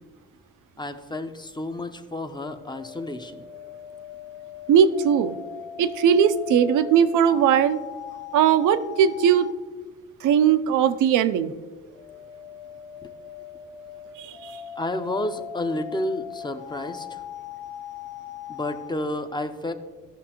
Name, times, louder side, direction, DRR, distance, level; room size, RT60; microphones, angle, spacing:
voice 1, 0.8-3.5 13.0-13.1 14.8-17.2 18.5-19.7, left 1 dB, 15° left, 8 dB, 0.7 m, -31 dB
sound 1, 2.2-9.6 11.6-18.9, left 9 dB, 90° left, 1.4 m, -40 dB
voice 2, 4.7-5.4 5.8-7.8 8.3-9.5 10.2-11.5 14.2-14.6, right 8 dB, 80° right, 12 dB, 0.6 m, -19 dB
15.0 x 6.0 x 3.0 m, 1.4 s
cardioid pair, 90°, 30 cm